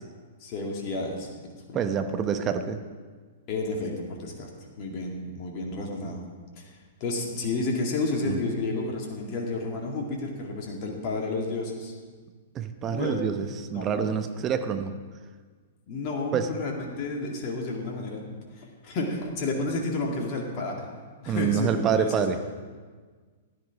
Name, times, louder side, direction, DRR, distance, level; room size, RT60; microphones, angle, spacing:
voice 1, 0.4-1.3 1.7-2.1 3.5-4.5 4.8-6.2 6.5-6.7 7.0-11.9 12.8-13.2 13.7-14.1 15.9-18.3 18.5-20.9 21.2-22.4, left 2 dB, 40° left, 0 dB, 2.3 m, -31 dB
voice 2, 1.7-2.8 8.3-8.4 12.5-14.9 16.3-16.5 21.3-22.5, right 7 dB, 25° right, 8 dB, 0.9 m, -27 dB
15.0 x 11.0 x 4.8 m, 1.5 s
figure-of-eight pair, 105°, 0 cm